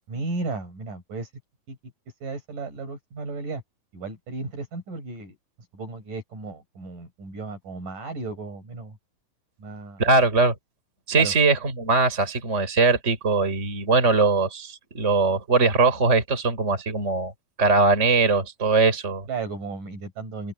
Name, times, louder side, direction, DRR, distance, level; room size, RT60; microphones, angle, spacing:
voice 1, 0.1-1.3 1.7-1.9 2.2-3.6 3.9-5.3 5.7-9.0 9.6-10.0 11.1-11.3 19.3-20.5, right 3 dB, 55° right, 8.0 m, -34 dB
voice 2, 10.0-10.5 11.1-17.3 17.6-19.3, right 3 dB, 15° right, 5.0 m, -21 dB
open air
omnidirectional pair, 4.4 m